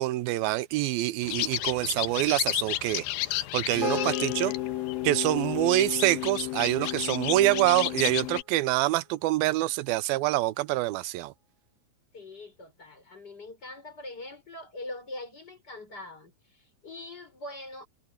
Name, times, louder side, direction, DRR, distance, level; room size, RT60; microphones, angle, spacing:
voice 1, 0.0-3.0 3.3-4.5 5.0-11.3, right 17 dB, 90° right, 2.5 m, -26 dB
sound 1, 1.2-8.4, left 17 dB, 85° left, 2.6 m, -31 dB
sound 2, 3.8-8.3, equal, 30° right, 4.1 m, -39 dB
voice 2, 3.9-4.6 5.6-5.7 12.1-17.9, left 2 dB, 25° left, 6.1 m, -43 dB
omnidirectional pair, 4.2 m